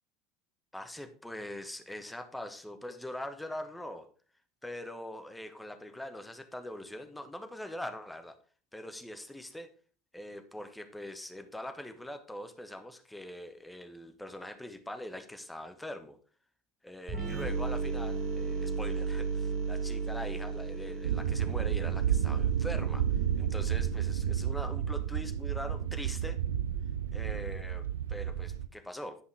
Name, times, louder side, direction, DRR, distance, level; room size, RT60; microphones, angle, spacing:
voice 1, 0.7-4.1 4.6-8.4 8.7-9.7 10.1-16.2 16.8-23.0 23.4-26.4 27.1-29.2, left 1 dB, 5° left, 8 dB, 1.3 m, -42 dB
sound 1, 17.1-24.7, right 4 dB, 55° right, 2.5 m, -35 dB
sound 2, 21.0-28.7, right 9 dB, 80° right, 0.5 m, -31 dB
10.5 x 5.5 x 4.8 m, 0.41 s
figure-of-eight pair, 70°, 0 cm